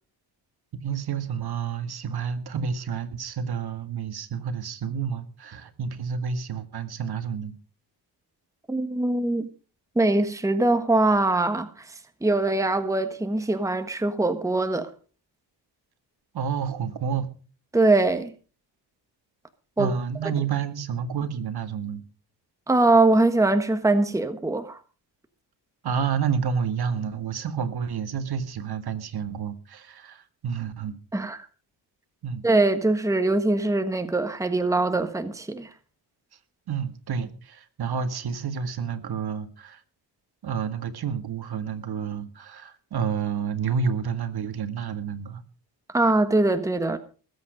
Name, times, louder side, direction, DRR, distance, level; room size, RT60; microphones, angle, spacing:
voice 1, 0.8-7.5 16.3-17.3 19.8-22.0 25.8-31.0 32.2-32.4 36.7-39.8 40.4-45.4, right 6 dB, 60° right, 2.0 m, -29 dB
voice 2, 8.7-9.5 9.9-11.9 12.2-14.9 17.7-18.3 19.8-19.9 22.7-24.8 31.1-31.4 32.4-35.7 45.9-47.0, right 2 dB, 5° right, 1.4 m, -22 dB
20.5 x 8.4 x 5.2 m
cardioid pair, 95°, 44 cm